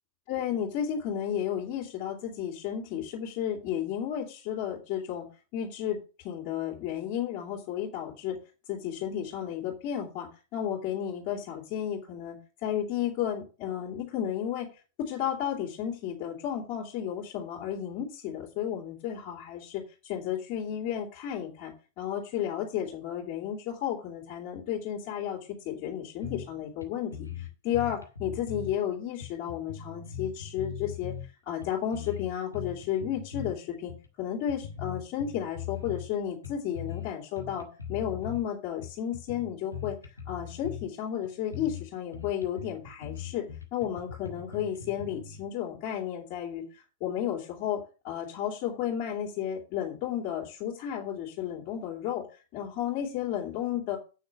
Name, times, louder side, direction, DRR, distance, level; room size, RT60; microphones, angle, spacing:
voice 1, 0.3-5.3 5.5-8.4 8.7-14.7 15.0-31.1 31.4-33.9 34.2-43.4 43.7-52.2 52.5-54.0, left 10 dB, 45° left, -3 dB, 2.9 m, -33 dB
sound 1, 26.2-26.6 26.8-26.9 27.1-28.8 29.2-31.3 31.6-33.5 33.9-34.1 34.5-36.1 36.4-37.1 37.4-38.4 38.8-40.9 41.2-41.3 41.5-41.8 42.1-45.4, left 8 dB, 85° left, 1.7 m, -40 dB
8.6 x 6.5 x 6.6 m, 0.34 s
figure-of-eight pair, 95°, 0 cm